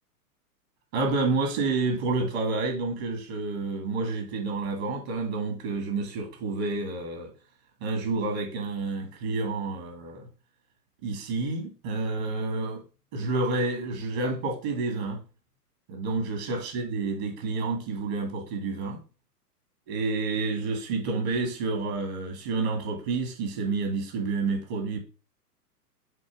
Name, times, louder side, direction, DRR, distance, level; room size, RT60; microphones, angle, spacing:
voice 1, 0.9-7.3 7.8-10.2 11.0-12.8 13.1-15.2 15.9-19.0 19.9-25.0, right 3 dB, 40° right, 2.3 m, -29 dB
7.7 x 3.0 x 4.9 m
figure-of-eight pair, 115°, 47 cm